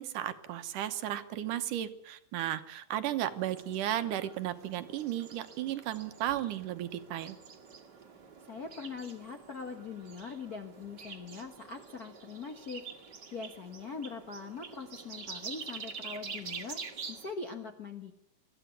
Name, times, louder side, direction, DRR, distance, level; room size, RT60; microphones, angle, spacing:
voice 1, 0.0-7.4, right 12 dB, 80° right, 10 dB, 2.6 m, -34 dB
sound 1, 3.3-17.3, right 5 dB, 40° right, 1.9 m, -47 dB
voice 2, 8.4-18.1, left 5 dB, 55° left, 5 dB, 1.0 m, -42 dB
21.5 x 14.5 x 9.7 m, 0.77 s
omnidirectional pair, 3.8 m